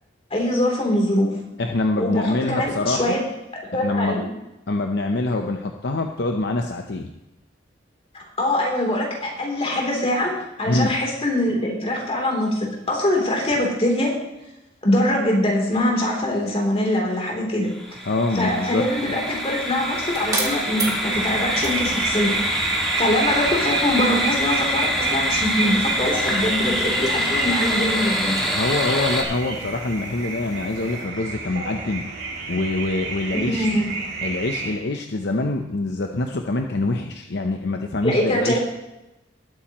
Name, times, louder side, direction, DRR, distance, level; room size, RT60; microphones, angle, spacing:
voice 1, 0.3-1.3 2.0-3.2 3.5-4.3 8.1-10.3 10.6-14.1 14.8-17.7 18.3-22.3 22.6-22.7 23.0-28.4 33.3-34.0 38.0-38.6, left 1 dB, 30° left, -1 dB, 3.3 m, -23 dB
voice 2, 1.6-3.2 3.7-4.2 4.7-7.1 10.6-10.9 18.0-18.8 28.5-32.0 32.5-33.7 34.2-38.6, left 2 dB, 65° left, 4 dB, 0.8 m, -25 dB
sound 1, 17.7-29.2, equal, ahead, 2.1 m, -25 dB
sound 2, 19.4-31.1, right 3 dB, 20° right, 2.0 m, -38 dB
sound 3, 21.1-34.7, right 4 dB, 65° right, 2.4 m, -31 dB
20.0 x 8.6 x 3.1 m, 0.93 s
head